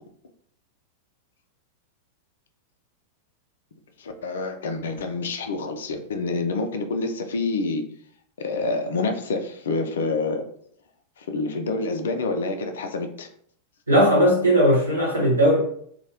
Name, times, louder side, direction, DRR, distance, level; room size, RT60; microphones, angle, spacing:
voice 1, 4.0-7.8 8.4-10.4 11.2-13.3, left 3 dB, 65° left, 6 dB, 0.3 m, -27 dB
voice 2, 13.9-15.6, equal, 85° right, -4 dB, 0.9 m, -18 dB
2.2 x 2.0 x 2.8 m, 0.63 s
figure-of-eight pair, 90°, 0 cm